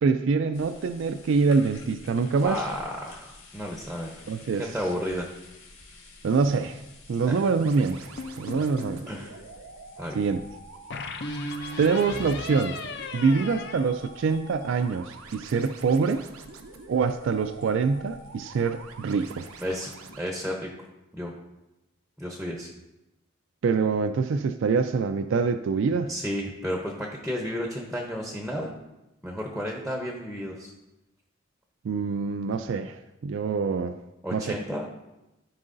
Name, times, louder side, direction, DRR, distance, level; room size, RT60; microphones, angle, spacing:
voice 1, 0.0-2.6 4.3-4.7 6.2-6.8 7.1-8.1 8.4-9.1 10.2-10.4 11.8-12.8 13.1-16.2 16.9-19.4 23.6-26.1 31.8-34.0 34.3-34.6, right 5 dB, 60° right, 9 dB, 0.3 m, -25 dB
sound 1, 0.5-19.7, left 2 dB, 70° left, 2.0 m, -52 dB
voice 2, 2.4-4.1 4.6-5.3 7.3-7.4 9.1-9.4 10.0-10.2 19.6-20.7 21.1-21.3 22.2-22.7 26.1-28.7 29.2-30.7 34.2-34.9, equal, ahead, 0 dB, 0.7 m, -32 dB
sound 2, 7.6-20.2, right 4 dB, 90° right, 0.7 m, -46 dB
sound 3, 8.2-9.1 10.9-14.7, left 3 dB, 55° left, 0.5 m, -36 dB
13.5 x 4.7 x 2.6 m, 0.96 s
head